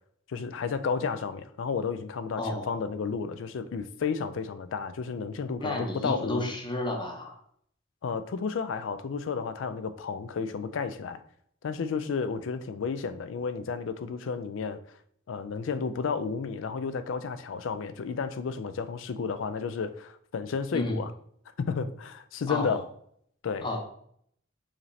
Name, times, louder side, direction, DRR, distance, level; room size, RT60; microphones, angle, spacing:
voice 1, 0.3-6.6 8.0-11.2 11.6-14.8 15.3-21.1 21.6-22.9 23.4-23.7, left 5 dB, 70° left, 12 dB, 0.4 m, -32 dB
voice 2, 2.4-2.8 5.6-7.4 20.7-21.0 22.5-22.8 23.6-23.8, left 2 dB, 25° left, 1 dB, 0.8 m, -32 dB
4.9 x 2.7 x 3.2 m, 0.66 s
head